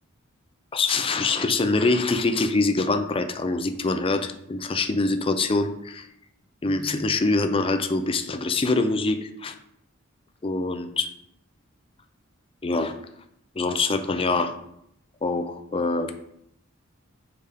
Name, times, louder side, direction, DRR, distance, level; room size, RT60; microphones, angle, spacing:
voice 1, 0.7-6.1 6.6-9.5 10.4-11.1 12.6-12.9 13.6-14.5 15.2-16.1, left 3 dB, 25° left, 7 dB, 0.5 m, -24 dB
6.6 x 4.9 x 3.5 m, 0.76 s
head